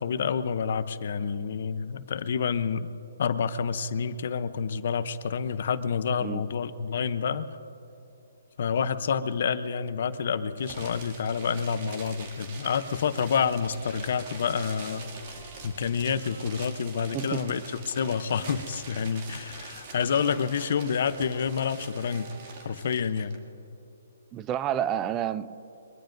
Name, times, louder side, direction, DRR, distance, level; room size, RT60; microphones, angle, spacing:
voice 1, 0.0-2.9 3.2-7.5 8.6-15.1 15.6-22.3 22.6-23.4, left 6 dB, 55° left, 13 dB, 0.7 m, -28 dB
sound 1, 9.8-16.5, left 4 dB, ahead, 3.1 m, -56 dB
sound 2, 10.6-23.3, right 3 dB, 40° right, 2.3 m, -44 dB
sound 3, 13.4-19.3 19.9-23.1, right 3 dB, 65° right, 2.6 m, -52 dB
voice 2, 17.1-17.5 24.3-25.5, right 10 dB, 20° right, 16 dB, 0.3 m, -29 dB
23.0 x 20.0 x 2.6 m, 2.9 s
hypercardioid pair, 160°, 0 cm